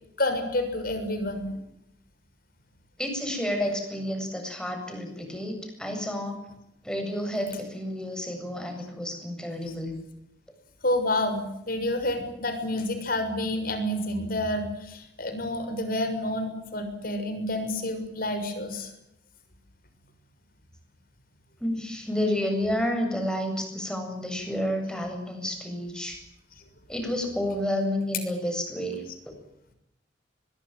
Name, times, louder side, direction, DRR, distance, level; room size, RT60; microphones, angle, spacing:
voice 1, 0.2-1.6 10.8-18.9, left 1 dB, 55° left, 8 dB, 6.7 m, -29 dB
voice 2, 3.0-6.4 6.8-9.9 21.6-26.2 26.9-29.3, left 1 dB, 5° left, 4 dB, 7.8 m, -30 dB
23.0 x 22.0 x 9.1 m, 0.82 s
head